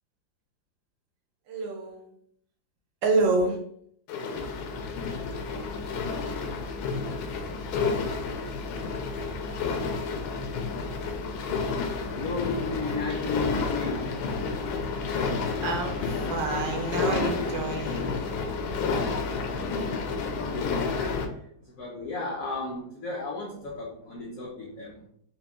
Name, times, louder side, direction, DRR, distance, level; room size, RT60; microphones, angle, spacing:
voice 1, 1.5-2.1 3.0-3.6 14.9-15.1 15.6-18.3, right 3 dB, 70° right, 2 dB, 1.5 m, -28 dB
sound 1, 4.1-21.3, left 4 dB, 85° left, 1.4 m, -30 dB
voice 2, 12.1-14.2 18.8-19.2 19.5-19.8 20.1-21.2 21.8-25.0, left 3 dB, 60° left, -3 dB, 0.9 m, -34 dB
4.7 x 2.4 x 3.5 m, 0.67 s
omnidirectional pair, 2.2 m